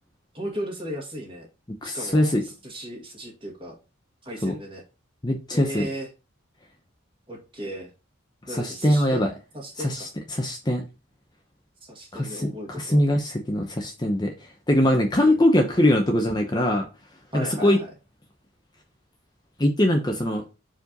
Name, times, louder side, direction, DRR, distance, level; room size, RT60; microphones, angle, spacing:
voice 1, 0.3-1.5 1.8-3.8 4.2-4.8 5.5-6.1 7.3-7.9 8.5-10.1 11.8-13.0 15.3-15.4 17.3-17.9, equal, 25° right, 2.0 m, -36 dB
voice 2, 1.8-2.4 4.4-4.5 5.2-5.9 8.5-9.3 9.8-10.8 12.1-14.3 14.7-16.8 17.3-17.8 19.6-20.4, left 1 dB, 20° left, 0.8 m, -22 dB
4.7 x 4.4 x 5.2 m
head